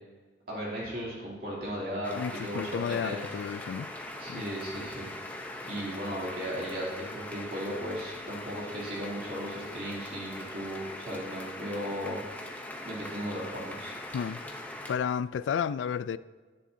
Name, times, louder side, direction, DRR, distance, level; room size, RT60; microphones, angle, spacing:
voice 1, 0.5-3.3 4.2-5.1 5.6-12.2 12.8-13.9, equal, 55° right, 2.7 m, -36 dB
sound 1, 2.0-14.9, left 1 dB, 10° left, 0.6 m, -41 dB
voice 2, 2.2-3.9 4.3-4.4 14.1-14.4 14.9-16.2, left 7 dB, 80° left, 0.3 m, -32 dB
10.0 x 10.0 x 2.7 m
head